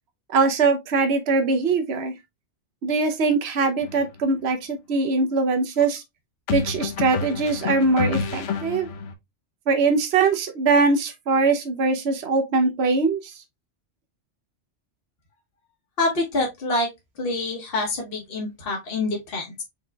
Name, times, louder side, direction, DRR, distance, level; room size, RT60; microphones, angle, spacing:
voice 1, 0.3-2.1 2.8-6.0 6.5-8.9 9.7-13.3, right 4 dB, 65° right, 1.1 m, -22 dB
sound 1, 3.8-4.1 6.5-9.1, left 5 dB, 85° left, 1.1 m, -29 dB
voice 2, 16.0-16.9 17.2-19.6, left 2 dB, 55° left, 1.3 m, -26 dB
4.9 x 3.9 x 2.3 m
omnidirectional pair, 1.2 m